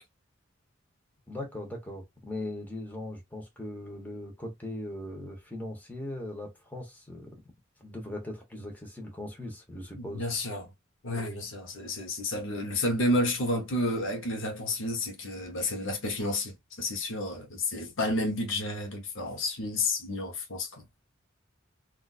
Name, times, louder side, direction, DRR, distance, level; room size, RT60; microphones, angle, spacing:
voice 1, 1.3-7.4 7.8-10.3, left 1 dB, 10° left, 1.0 m, -39 dB
voice 2, 10.0-10.7 11.0-20.9, left 1 dB, 65° left, 0.9 m, -31 dB
3.9 x 2.5 x 2.4 m
head